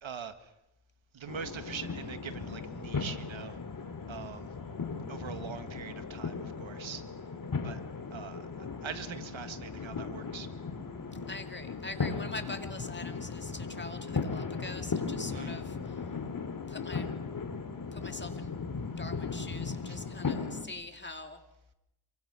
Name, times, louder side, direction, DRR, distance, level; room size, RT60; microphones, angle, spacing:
voice 1, 0.0-0.5 1.1-3.6 4.1-4.5 5.1-7.0 7.6-7.8 8.1-10.5 15.3-15.6 19.9-20.0, right 7 dB, 70° right, 10 dB, 1.8 m, -43 dB
sound 1, 1.3-20.7, left 4 dB, 40° left, 2.4 m, -37 dB
voice 2, 11.3-16.0 16.7-17.1 17.9-18.6 19.0-21.4, left 2 dB, 20° left, 6 dB, 2.3 m, -43 dB
27.0 x 24.0 x 6.2 m, 0.88 s
wide cardioid pair, 100°, 48 cm